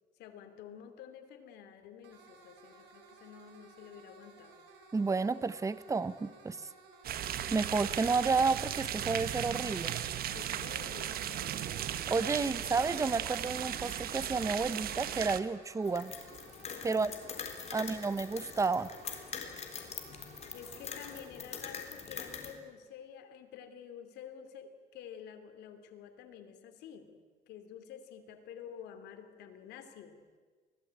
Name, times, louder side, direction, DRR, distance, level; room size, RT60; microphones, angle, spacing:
voice 1, 0.2-4.6 6.6-6.7 10.3-11.5 12.4-12.5 16.9-17.2 17.6-18.0 20.5-27.1 27.5-30.2, left 8 dB, 80° left, 7 dB, 3.0 m, -50 dB
sound 1, 2.0-21.2, right 4 dB, 85° right, 5.6 m, -57 dB
voice 2, 4.9-6.6 7.5-9.9 12.1-16.1 16.8-17.1 17.7-18.9, right 4 dB, 20° right, 16 dB, 0.9 m, -31 dB
sound 2, 7.0-15.4, right 10 dB, 65° right, 1.5 m, -36 dB
sound 3, 15.8-22.5, left 6 dB, 40° left, 3.7 m, -43 dB
24.0 x 17.5 x 8.9 m, 1.5 s
cardioid pair, 110°, 17 cm